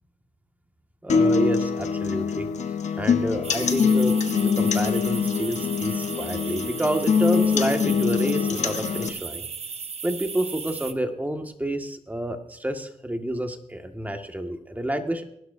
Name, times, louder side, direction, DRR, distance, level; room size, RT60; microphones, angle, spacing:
voice 1, 1.0-2.5 2.9-4.2 4.4-9.5 10.0-15.2, right 1 dB, 15° right, 5 dB, 2.0 m, -29 dB
sound 1, 1.1-9.1, left 6 dB, 70° left, 1.2 m, -23 dB
sound 2, 3.4-10.9, right 6 dB, 55° right, 1.1 m, -36 dB
20.5 x 12.0 x 2.8 m, 0.76 s
cardioid pair, 60°, 12 cm